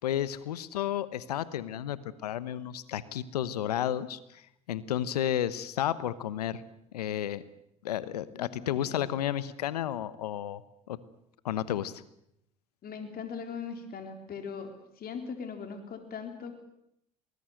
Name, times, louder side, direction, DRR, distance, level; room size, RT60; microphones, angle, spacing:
voice 1, 0.0-4.4 4.7-6.6 6.9-7.4 7.8-10.6 10.9-11.0 11.4-12.0, left 11 dB, 90° left, 17 dB, 1.1 m, -32 dB
voice 2, 8.2-9.1 12.8-16.5, left 6 dB, 50° left, 6 dB, 3.8 m, -40 dB
23.5 x 20.0 x 7.8 m, 0.77 s
hypercardioid pair, 60°, 20 cm